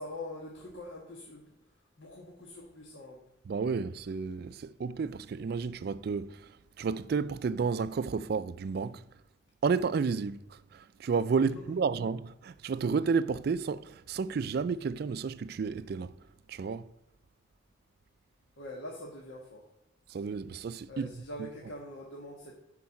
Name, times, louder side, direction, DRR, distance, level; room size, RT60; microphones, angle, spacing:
voice 1, 0.0-1.5 2.0-3.2 18.6-19.6 20.9-22.5, left 1 dB, 80° left, 1.5 m, -43 dB
voice 2, 3.4-9.0 9.6-16.1 16.5-16.9 20.1-21.1 21.4-21.5, right 5 dB, 55° right, 0.3 m, -31 dB
10.5 x 4.7 x 5.8 m
head